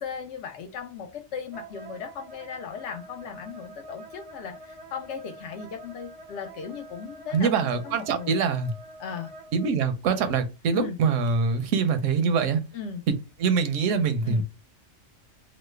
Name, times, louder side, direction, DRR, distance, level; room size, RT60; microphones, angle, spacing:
voice 1, 0.0-7.5 7.8-8.4 9.0-9.3 10.7-11.0 12.7-13.0 14.2-14.4, left 6 dB, 70° left, 0.9 m, -37 dB
Wind instrument woodwind instrument, 1.5-9.7, right 2 dB, 40° right, 0.5 m, -46 dB
voice 2, 7.3-8.7 9.5-12.6 13.1-13.2 13.4-14.4, right 5 dB, 80° right, 1.0 m, -24 dB
3.1 x 2.0 x 3.1 m
omnidirectional pair, 1.3 m